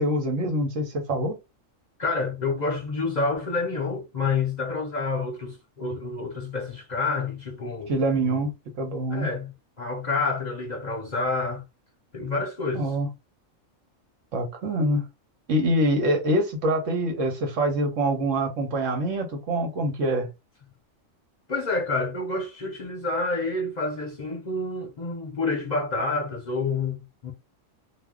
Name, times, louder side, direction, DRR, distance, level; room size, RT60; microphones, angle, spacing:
voice 1, 0.0-1.4 7.9-8.5 8.8-9.3 12.7-13.1 14.3-15.0 15.5-20.3, right 1 dB, 70° right, 1.2 m, -25 dB
voice 2, 2.0-8.0 8.2-8.5 9.1-11.6 12.1-12.9 21.5-27.3, left 3 dB, 45° left, 0.7 m, -28 dB
2.7 x 2.0 x 3.5 m
omnidirectional pair, 1.3 m